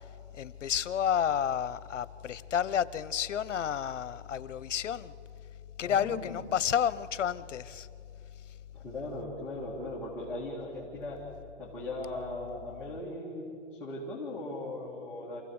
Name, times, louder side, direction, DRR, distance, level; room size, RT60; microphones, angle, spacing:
voice 1, 0.3-5.1 5.8-7.9, left 9 dB, 85° left, 17 dB, 0.9 m, -30 dB
voice 2, 5.8-6.4 8.7-11.2 11.6-15.4, left 2 dB, 5° left, -8 dB, 2.1 m, -38 dB
27.5 x 15.5 x 7.9 m, 2.6 s
hypercardioid pair, 165°, 36 cm